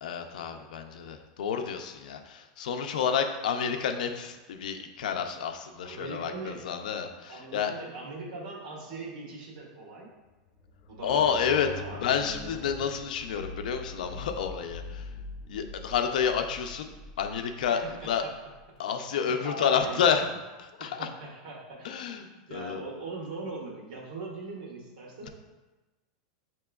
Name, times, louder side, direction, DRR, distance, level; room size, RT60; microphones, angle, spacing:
voice 1, 0.0-7.7 11.0-11.7 12.0-15.0 15.5-16.9 17.2-18.2 18.8-20.3 20.6-21.1 21.8-22.8, left 7 dB, 85° left, 6 dB, 0.4 m, -29 dB
voice 2, 5.8-6.7 7.3-10.1 10.9-12.0 17.6-18.3 19.1-20.0 20.8-25.3, right 2 dB, 85° right, -2 dB, 1.2 m, -41 dB
sound 1, 10.3-18.6, left 2 dB, 10° left, 1.0 m, -44 dB
6.8 x 2.9 x 2.3 m, 1.1 s
supercardioid pair, 175°, 4 cm